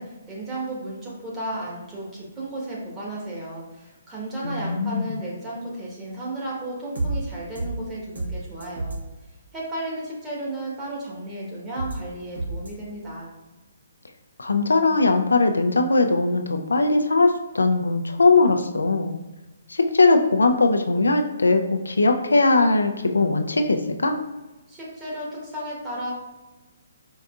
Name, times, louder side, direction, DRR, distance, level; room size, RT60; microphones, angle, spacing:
voice 1, 0.0-9.0 9.5-13.3 24.7-26.1, right 1 dB, 15° right, -5 dB, 1.2 m, -34 dB
voice 2, 4.4-5.1 14.4-19.2 19.7-24.2, left 3 dB, 90° left, 5 dB, 0.4 m, -20 dB
sound 1, 7.0-7.1 7.6-7.7 8.2-8.3 8.6-9.0 11.8-12.0 12.4-12.7, right 3 dB, 70° right, 1.1 m, -28 dB
4.6 x 2.6 x 2.3 m, 1.1 s
hypercardioid pair, 145°, 0 cm